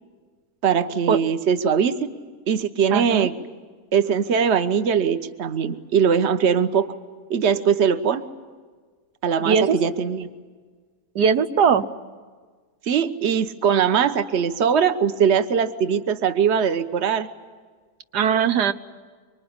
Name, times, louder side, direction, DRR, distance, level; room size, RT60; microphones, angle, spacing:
voice 1, 0.6-2.1 2.5-3.3 3.9-6.9 7.3-8.2 9.2-10.3 12.9-17.3, right 7 dB, 45° right, 10 dB, 1.3 m, -21 dB
voice 2, 2.9-3.3 9.4-9.8 11.1-11.9 18.1-18.7, right 7 dB, 90° right, 10 dB, 1.6 m, -19 dB
25.0 x 24.0 x 9.7 m, 1.5 s
omnidirectional pair, 1.7 m